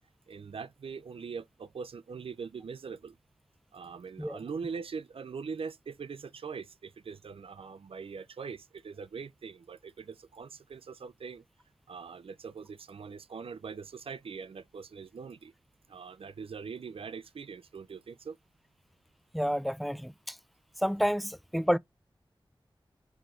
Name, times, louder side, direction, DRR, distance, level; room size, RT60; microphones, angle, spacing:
voice 1, 0.3-3.2 3.7-11.4 11.9-15.5 15.9-18.4, right 5 dB, 85° right, 0.4 m, -42 dB
voice 2, 19.3-20.3 20.8-21.8, equal, ahead, 0.3 m, -29 dB
4.8 x 3.7 x 3.0 m
wide cardioid pair, 55°, 9 cm